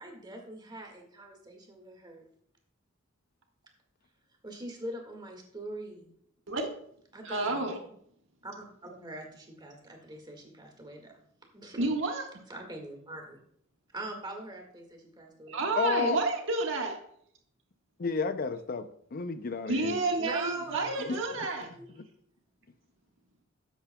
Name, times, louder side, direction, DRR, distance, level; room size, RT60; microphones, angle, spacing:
voice 1, 0.0-2.3 4.4-6.1 7.1-7.9 8.4-11.1 11.5-11.9 12.5-13.4 13.9-15.6 20.2-21.9, right 1 dB, 20° right, 1.8 m, -43 dB
voice 2, 7.2-7.8 11.8-12.2 15.5-17.0 19.7-21.8, right 3 dB, 65° right, 1.5 m, -30 dB
voice 3, 15.8-16.2 18.0-20.0 21.1-21.2, left 5 dB, 45° left, 0.5 m, -31 dB
11.5 x 8.2 x 2.2 m
head